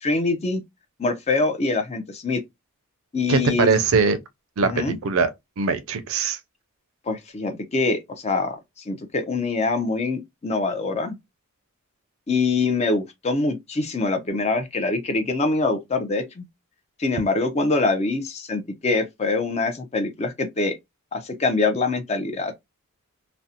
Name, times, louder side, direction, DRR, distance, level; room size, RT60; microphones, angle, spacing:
voice 1, 0.0-0.6 1.0-2.4 3.1-3.7 4.6-5.0 7.1-11.2 12.3-16.4 17.0-20.7 21.1-22.5, left 3 dB, 30° left, 0.4 m, -24 dB
voice 2, 3.3-4.2 4.6-5.3 5.6-6.4, right 4 dB, 65° right, 0.4 m, -21 dB
2.5 x 2.1 x 2.7 m
head